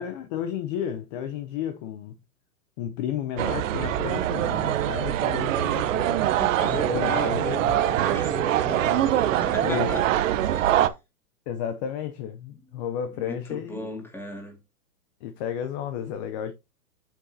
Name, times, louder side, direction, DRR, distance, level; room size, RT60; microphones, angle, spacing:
voice 1, 0.0-2.2 2.8-6.2 6.9-7.6 9.6-10.0 11.5-14.1 15.2-16.5, left 9 dB, 30° left, 0.6 m, -32 dB
sound 1, 3.4-10.9, right 12 dB, 55° right, 0.8 m, -24 dB
voice 2, 5.7-6.0 6.3-10.1 10.4-10.9 13.2-14.6, left 1 dB, 5° left, 2.0 m, -35 dB
8.1 x 6.3 x 2.7 m
hypercardioid pair, 130°, 47 cm